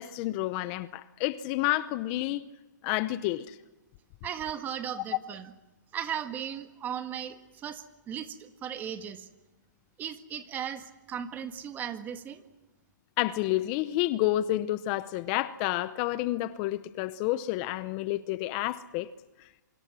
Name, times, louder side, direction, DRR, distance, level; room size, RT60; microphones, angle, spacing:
voice 1, 0.0-2.4 2.8-3.6 13.2-19.1, left 16 dB, 30° left, 0.7 m, -29 dB
voice 2, 4.2-5.5 5.9-9.3 10.0-12.4, right 9 dB, 20° right, 1.7 m, -37 dB
28.0 x 25.0 x 6.2 m
hypercardioid pair, 145°, 10 cm